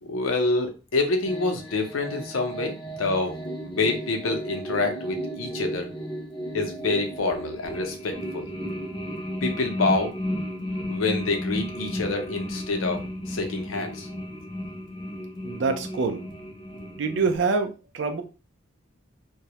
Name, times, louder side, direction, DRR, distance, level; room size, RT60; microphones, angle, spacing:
voice 1, 0.0-5.9 6.5-8.5 9.4-10.1 10.9-14.1, left 3 dB, 80° left, 4 dB, 0.6 m, -27 dB
sound 1, 1.2-17.3, equal, 20° left, 0.4 m, -34 dB
voice 2, 15.4-16.2 17.0-18.2, right 4 dB, 60° right, 6 dB, 0.4 m, -25 dB
2.2 x 2.0 x 2.8 m, 0.31 s
head